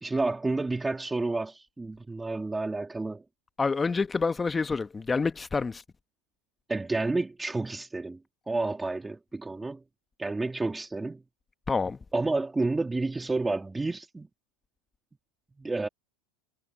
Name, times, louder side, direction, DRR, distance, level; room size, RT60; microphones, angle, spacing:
voice 1, 0.0-3.2 6.7-8.2 8.5-9.8 10.2-11.2 12.1-14.3 15.6-15.9, right 3 dB, 10° right, 2.9 m, -30 dB
voice 2, 3.6-5.8 11.7-12.0, left 4 dB, 15° left, 1.4 m, -27 dB
hypercardioid pair, 110°, 0 cm